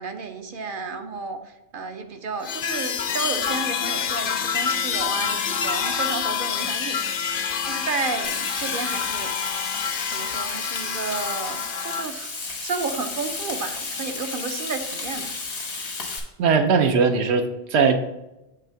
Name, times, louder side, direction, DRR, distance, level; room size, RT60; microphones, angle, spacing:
voice 1, 0.0-7.1 7.7-9.3 10.1-15.3, right 4 dB, 60° right, 6 dB, 0.8 m, -32 dB
sound 1, 2.4-12.1, left 7 dB, 60° left, 0.7 m, -27 dB
Frying (food), 8.2-16.2, left 4 dB, 85° left, 1.5 m, -33 dB
voice 2, 16.4-18.0, right 5 dB, 80° right, 7 dB, 1.0 m, -19 dB
7.3 x 3.4 x 5.7 m, 0.94 s
omnidirectional pair, 1.1 m